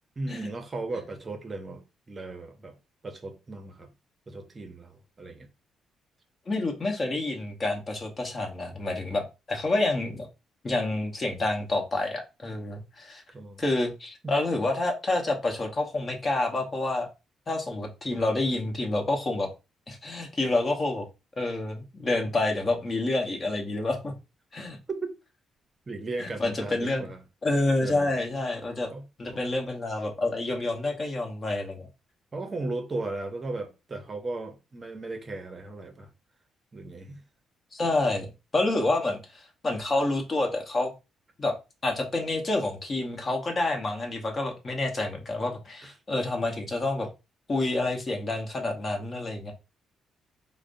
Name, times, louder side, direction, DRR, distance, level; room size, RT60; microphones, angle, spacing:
voice 1, 0.2-2.7 3.0-3.9 4.3-5.5 13.3-13.6 14.2-14.4 24.9-25.1 25.9-27.2 27.8-28.1 28.9-29.0 29.3-29.4 32.3-36.1 36.7-37.2 45.8-45.9, right 2 dB, 30° right, 0.6 m, -36 dB
voice 2, 6.5-9.2 9.5-10.3 10.6-13.2 13.6-17.1 17.5-19.5 19.9-21.0 21.4-24.1 24.5-24.8 26.2-27.1 27.4-28.9 29.2-31.9 37.7-38.3 38.5-40.9 41.4-41.5 41.8-47.1 47.5-49.5, left 2 dB, 35° left, 0.9 m, -28 dB
4.8 x 2.0 x 2.5 m
cardioid pair, 90°, 0 cm